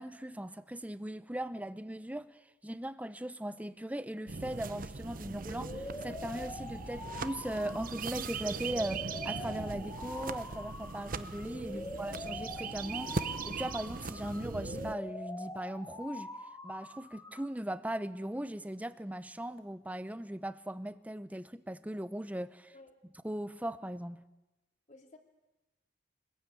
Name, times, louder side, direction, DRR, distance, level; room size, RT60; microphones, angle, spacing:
voice 1, 0.0-2.3 2.6-16.3 16.6-22.7 23.2-24.2, right 1 dB, 10° right, 0.9 m, -39 dB
sound 1, 4.3-14.9, right 4 dB, 50° right, 0.8 m, -40 dB
sound 2, 5.5-17.5, left 1 dB, 20° left, 2.8 m, -44 dB
voice 2, 11.7-12.2 22.7-22.9 24.9-25.2, left 2 dB, 45° left, 3.1 m, -54 dB
25.5 x 20.5 x 9.0 m
head